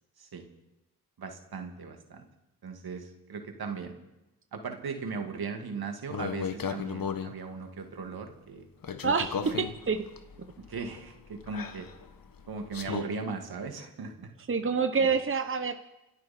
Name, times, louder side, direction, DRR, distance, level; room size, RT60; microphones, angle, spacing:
voice 1, 1.2-2.3 2.6-4.0 4.5-8.7 9.4-9.6 10.6-11.9 12.5-14.3 15.0-15.1, right 5 dB, 75° right, 4 dB, 2.3 m, -38 dB
sound 1, 6.1-7.3 8.8-13.0, left 7 dB, 65° left, 1.3 m, -36 dB
voice 2, 9.0-10.0 12.8-13.0 14.5-15.7, right 5 dB, 35° right, 7 dB, 1.0 m, -27 dB
27.5 x 11.5 x 4.4 m, 0.96 s
cardioid pair, 65°, 37 cm